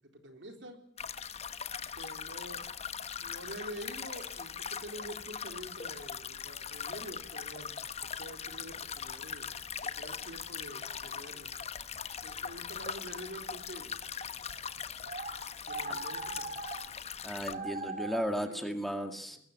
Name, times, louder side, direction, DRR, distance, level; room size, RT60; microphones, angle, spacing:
voice 1, 0.1-0.8 2.0-2.6 3.2-7.9 8.2-9.5 9.8-11.5 12.2-14.0 15.7-16.6 18.4-18.8 19.3-19.4, right 1 dB, 75° right, 5 dB, 3.9 m, -47 dB
sound 1, 1.0-17.5, left 7 dB, 35° left, 1.0 m, -40 dB
sound 2, 4.1-4.7 6.7-6.8 7.4-7.6 7.8-10.3 10.6-18.3, right 3 dB, 45° right, 3.7 m, -44 dB
voice 2, 17.2-19.4, equal, ahead, 5 dB, 2.1 m, -35 dB
22.0 x 19.0 x 9.2 m, 0.67 s
head